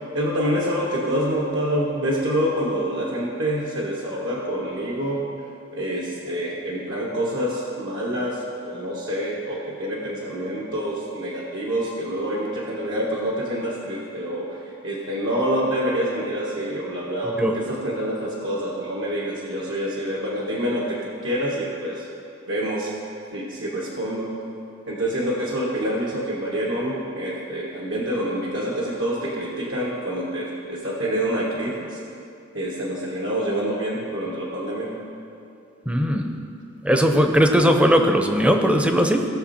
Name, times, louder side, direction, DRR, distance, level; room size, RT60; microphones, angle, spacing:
voice 1, 0.1-5.2 5.7-22.1 22.5-22.9 23.3-24.3 24.9-32.0 32.5-35.0, equal, 70° right, -4 dB, 1.5 m, -27 dB
voice 2, 35.9-36.3 36.8-39.3, equal, 5° right, 5 dB, 0.7 m, -18 dB
17.5 x 6.6 x 4.3 m, 2.6 s
head